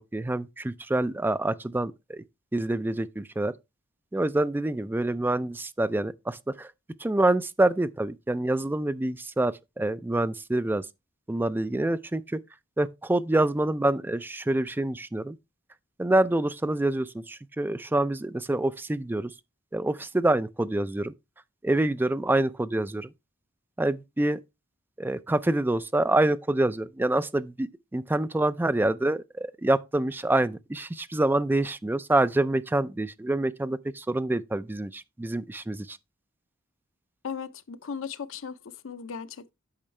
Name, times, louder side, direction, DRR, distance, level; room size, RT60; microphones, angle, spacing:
voice 1, 0.1-2.2 2.5-3.5 4.1-6.7 7.0-10.9 11.3-12.4 12.8-15.4 16.0-19.3 19.7-21.1 21.6-23.1 23.8-24.4 25.0-36.0, right 2 dB, 10° right, 0.3 m, -26 dB
voice 2, 37.2-38.6 38.8-39.5, left 6 dB, 75° left, 0.6 m, -36 dB
8.7 x 5.4 x 3.2 m
head